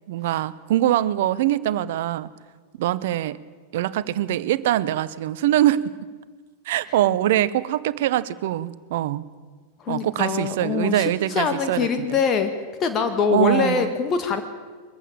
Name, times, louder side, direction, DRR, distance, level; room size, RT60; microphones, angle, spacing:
voice 1, 0.1-2.3 2.8-3.4 3.7-5.8 6.7-9.2 9.9-12.1 13.3-13.9, right 13 dB, 55° right, 17 dB, 0.7 m, -23 dB
voice 2, 9.8-12.5 12.8-14.4, left 6 dB, 30° left, 7 dB, 1.7 m, -23 dB
22.0 x 15.0 x 8.8 m, 1.5 s
figure-of-eight pair, 90°, 0 cm